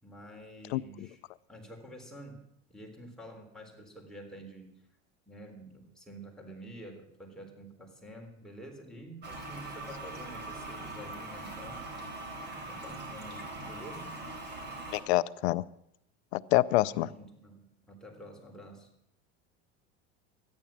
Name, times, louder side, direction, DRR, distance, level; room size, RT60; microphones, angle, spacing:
voice 1, 0.0-1.2 1.5-4.7 5.3-11.8 12.7-14.2 16.8-18.9, right 1 dB, ahead, 0 dB, 3.7 m, -48 dB
voice 2, 0.7-1.1 14.9-15.6 16.3-17.1, left 17 dB, 75° left, 18 dB, 0.7 m, -27 dB
Toilet flush, 9.2-15.0, right 2 dB, 30° right, 4.0 m, -41 dB
13.5 x 10.5 x 7.3 m, 0.77 s
supercardioid pair, 105°, 33 cm